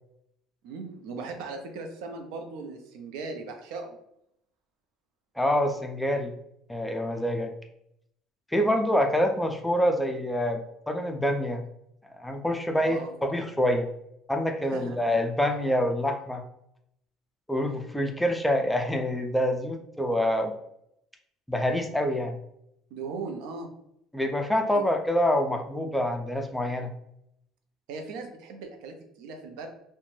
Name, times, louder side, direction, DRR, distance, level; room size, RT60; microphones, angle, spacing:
voice 1, 0.6-4.0 12.8-13.1 14.7-15.1 22.9-23.7 24.7-24.9 27.9-29.7, right 4 dB, 85° right, 5 dB, 0.5 m, -38 dB
voice 2, 5.4-6.3 6.7-7.5 8.5-11.6 12.1-13.9 14.3-16.4 17.5-20.5 21.5-22.4 24.1-26.9, equal, 5° left, 4 dB, 0.3 m, -26 dB
2.5 x 2.1 x 3.1 m, 0.76 s
cardioid pair, 150°, 0 cm